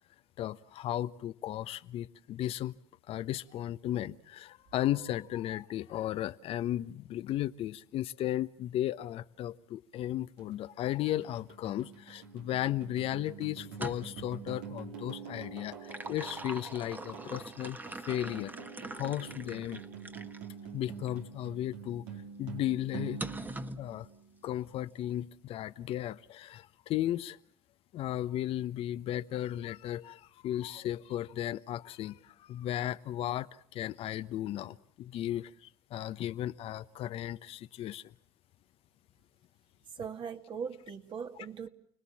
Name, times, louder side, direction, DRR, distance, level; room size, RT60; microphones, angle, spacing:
voice 1, 0.4-2.7 3.1-18.5 18.9-19.8 20.7-22.0 22.4-23.2 23.8-24.1 24.4-27.4 27.9-38.0, left 13 dB, 55° left, 1.0 m, -35 dB
sound 1, 10.4-24.6, right 6 dB, 80° right, 4.3 m, -46 dB
sound 2, 13.7-14.3 15.6-20.5 21.1-21.2 23.2-23.8, right 2 dB, 15° right, 1.6 m, -42 dB
voice 2, 39.9-41.7, right 6 dB, 45° right, 2.5 m, -40 dB
29.5 x 20.0 x 7.3 m
hypercardioid pair, 70°, 12 cm